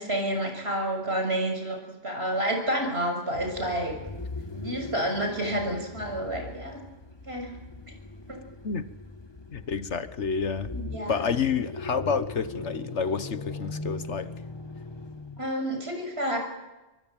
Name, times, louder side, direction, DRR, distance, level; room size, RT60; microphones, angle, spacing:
voice 1, 0.0-1.8 2.0-4.0 4.5-6.8 7.2-7.5 8.3-8.4 10.7-11.3 15.4-16.4, right 1 dB, 60° right, 6.8 m, -29 dB
sound 1, 3.3-15.5, left 3 dB, 25° left, 1.2 m, -40 dB
voice 2, 9.5-10.7 11.1-14.3, left 6 dB, 70° left, 1.5 m, -29 dB
27.5 x 23.5 x 9.1 m
omnidirectional pair, 1.2 m